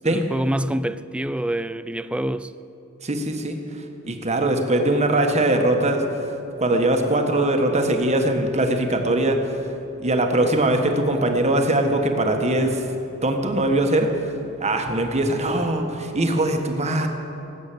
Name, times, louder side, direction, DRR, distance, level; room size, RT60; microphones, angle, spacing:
voice 1, 0.0-2.5, right 1 dB, 5° right, 0.3 m, -26 dB
voice 2, 3.0-3.6 4.1-6.0 6.6-9.4 10.0-12.8 13.2-14.1 14.6-17.1, right 1 dB, 30° right, 1.5 m, -21 dB
19.0 x 8.4 x 8.5 m
head